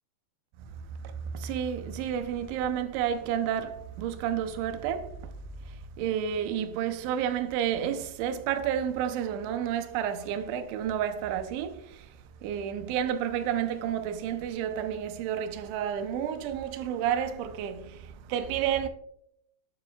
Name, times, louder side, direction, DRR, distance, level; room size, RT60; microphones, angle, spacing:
voice 1, 0.6-5.2 5.7-12.1 12.4-18.9, right 9 dB, 90° right, 3.1 m, -31 dB
11.5 x 7.5 x 2.3 m
omnidirectional pair, 5.2 m